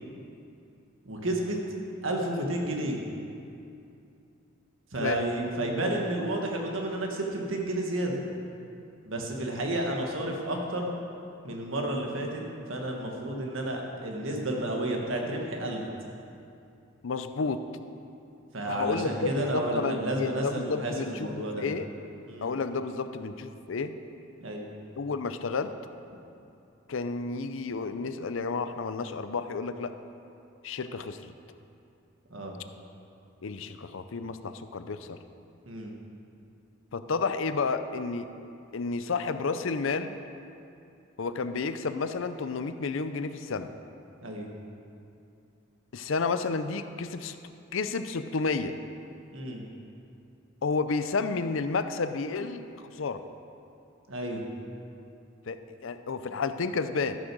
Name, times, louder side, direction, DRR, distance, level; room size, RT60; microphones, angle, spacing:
voice 1, 1.0-1.6 2.0-3.0 4.9-8.2 9.0-10.9 11.4-12.4 12.7-15.9 18.5-21.7 22.3-22.5 24.4-24.7 32.3-32.5 35.7-35.9 44.2-44.5 49.3-49.6 54.1-54.4, right 1 dB, 75° right, 1 dB, 1.6 m, -31 dB
voice 2, 17.0-17.6 18.7-21.9 22.4-23.9 25.0-25.7 26.9-29.9 30.6-31.3 33.4-35.2 36.9-38.3 38.7-40.1 41.2-43.7 45.9-47.4 47.7-48.8 50.6-53.2 55.5-57.2, left 4 dB, 70° left, 10 dB, 0.5 m, -31 dB
13.5 x 6.4 x 6.2 m, 2.6 s
head